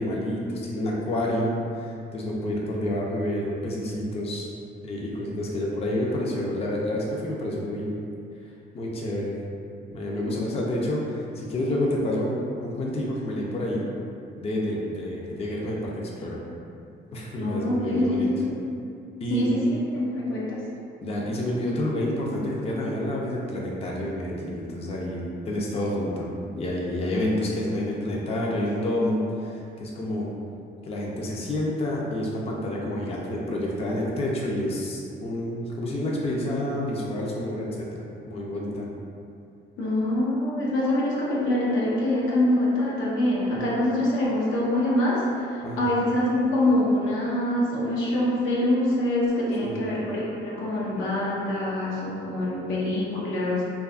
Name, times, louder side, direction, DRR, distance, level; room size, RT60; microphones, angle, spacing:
voice 1, 0.0-4.5 4.8-8.0 8.7-9.4 9.9-13.8 14.4-16.4 17.1-18.3 19.2-19.5 21.0-30.3 30.8-38.9 43.6-43.7 45.6-46.0 49.6-49.8, left 1 dB, 30° left, -3 dB, 0.4 m, -29 dB
voice 2, 17.4-18.6 19.3-20.6 39.8-53.6, left 1 dB, 85° left, -6 dB, 0.6 m, -25 dB
2.6 x 2.3 x 2.3 m, 2.5 s
cardioid pair, 90°, 20 cm